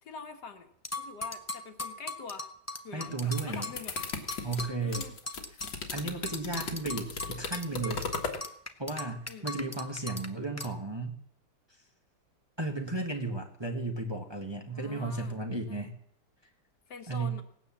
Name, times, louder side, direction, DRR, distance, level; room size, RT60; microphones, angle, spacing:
voice 1, 0.0-0.7 1.0-2.5 2.8-4.0 4.8-5.2 9.3-9.5 14.7-15.4 15.7-15.9 16.9-17.4, left 5 dB, 70° left, 6 dB, 2.0 m, -45 dB
sound 1, 0.8-6.0 6.3-10.3 10.6-10.7, left 2 dB, 15° left, 0.6 m, -38 dB
voice 2, 2.9-3.7 4.4-5.1 5.9-8.1 8.8-11.2 12.6-15.9 17.1-17.4, right 3 dB, 15° right, 2 dB, 1.4 m, -34 dB
sound 2, 3.0-8.4, left 5 dB, 85° left, 2.2 m, -37 dB
18.0 x 9.4 x 7.2 m, 0.68 s
omnidirectional pair, 1.9 m